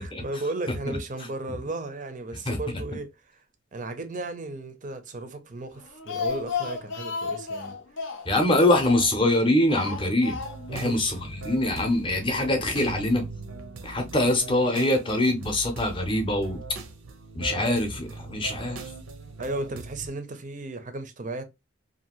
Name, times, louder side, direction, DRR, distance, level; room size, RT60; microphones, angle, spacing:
voice 1, 0.0-3.4 3.7-7.8 10.7-11.0 19.4-21.4, right 2 dB, 40° right, 0.5 m, -35 dB
Speech, 5.8-9.3 9.7-10.8 11.1-11.2 11.5-11.6, left 5 dB, 60° left, 0.5 m, -33 dB
voice 2, 8.3-10.4 10.7-13.2 13.8-16.6 17.3-18.8, left 1 dB, 25° left, 0.6 m, -24 dB
sound 1, 10.3-20.1, right 3 dB, 80° right, 0.6 m, -40 dB
2.7 x 2.5 x 2.8 m
head